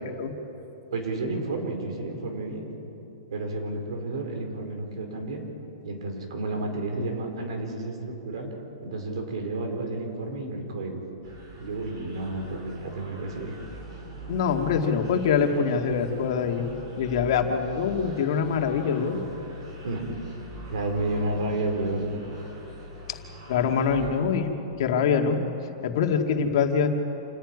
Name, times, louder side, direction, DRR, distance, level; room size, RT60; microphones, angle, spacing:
voice 1, 0.9-2.7 3.3-5.4 5.8-8.0 8.2-8.5 8.8-11.0 11.6-13.6 19.8-20.0 20.7-22.1, right 2 dB, 75° right, 3 dB, 4.8 m, -31 dB
sound 1, 11.2-24.1, equal, 55° right, 7.0 m, -43 dB
voice 2, 14.3-16.7 17.0-19.2 23.5-24.5 24.8-25.4 25.8-26.9, left 6 dB, 60° left, 3 dB, 2.1 m, -24 dB
28.0 x 10.5 x 9.6 m, 2.9 s
hypercardioid pair, 155°, 3 cm